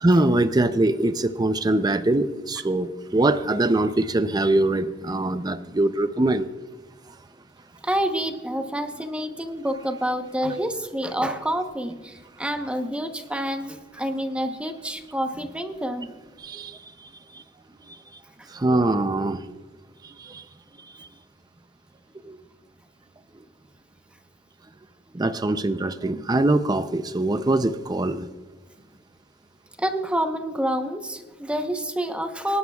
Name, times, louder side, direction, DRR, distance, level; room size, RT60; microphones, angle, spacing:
voice 1, 0.0-6.5 10.5-10.7 16.4-17.4 17.9-18.0 18.5-19.5 20.0-20.4 21.0-21.1 22.2-22.4 25.1-28.3, right 2 dB, 20° right, 10 dB, 0.5 m, -23 dB
voice 2, 7.8-16.1 29.8-32.6, equal, 5° right, 6 dB, 0.9 m, -28 dB
25.0 x 11.0 x 2.3 m, 1.3 s
head